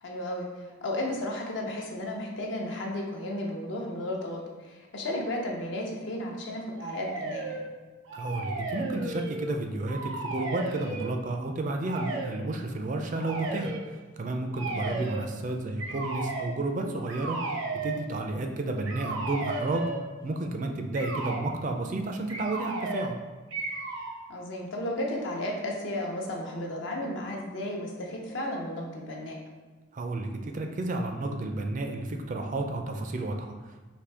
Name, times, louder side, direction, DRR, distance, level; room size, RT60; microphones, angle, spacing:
voice 1, 0.0-7.6 14.7-15.0 24.3-29.4, left 1 dB, 65° left, -1 dB, 0.8 m, -34 dB
sound 1, 6.8-7.7 8.0-9.5 9.8-11.1 11.8-12.3 13.2-13.8 14.5-15.3 15.8-16.5 17.1-18.0 18.9-20.1 20.9-21.4 22.3-23.2 23.5-24.2, right 2 dB, 90° right, 0.7 m, -34 dB
voice 2, 8.1-13.7 14.2-17.4 17.8-19.9 20.2-23.2 29.9-33.6, right 2 dB, 40° right, 4 dB, 0.4 m, -31 dB
5.1 x 2.7 x 3.3 m, 1.3 s
head